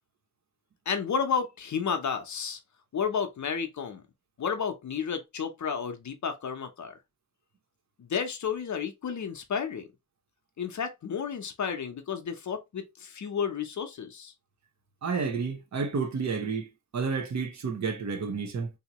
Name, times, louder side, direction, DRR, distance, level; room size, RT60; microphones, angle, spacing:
voice 1, 0.9-2.6 2.9-4.0 4.4-6.9 8.0-9.9 10.6-14.3, left 6 dB, 55° left, 0.7 m, -32 dB
voice 2, 15.0-18.7, right 5 dB, 50° right, 0.8 m, -31 dB
3.6 x 2.8 x 2.8 m
wide cardioid pair, 165°, 35 cm